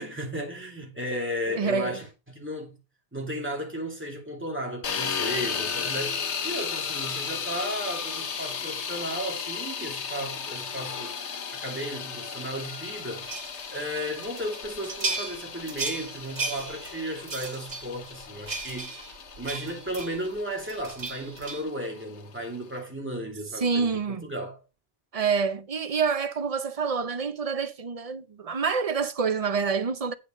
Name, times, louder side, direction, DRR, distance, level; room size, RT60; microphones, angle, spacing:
voice 1, 0.0-2.7 3.1-13.3 13.7-18.9 19.4-24.6, equal, 10° right, 2.6 m, -34 dB
voice 2, 1.5-2.0 23.6-24.3 25.1-30.1, right 5 dB, 40° right, 0.6 m, -27 dB
sound 1, 4.8-22.8, left 6 dB, 85° left, 1.3 m, -35 dB
sound 2, 13.3-13.7 14.2-20.4 20.7-21.6, right 3 dB, 80° right, 2.3 m, -36 dB
8.5 x 5.7 x 5.2 m
omnidirectional pair, 1.1 m